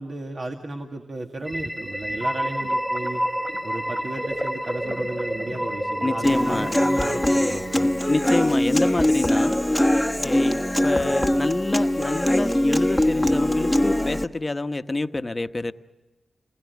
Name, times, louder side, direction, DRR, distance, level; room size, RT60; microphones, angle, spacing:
voice 1, 0.0-3.2 3.6-7.8, right 2 dB, 50° right, 3 dB, 2.0 m, -34 dB
sound 1, 1.4-8.2, equal, 10° right, 2.7 m, -29 dB
voice 2, 6.0-6.8 7.8-9.6 10.1-15.7, left 2 dB, 30° left, 10 dB, 1.1 m, -27 dB
Human voice / Acoustic guitar, 6.2-14.2, left 1 dB, 5° left, 1.2 m, -22 dB
27.0 x 20.5 x 9.5 m, 1.2 s
cardioid pair, 60°, 0 cm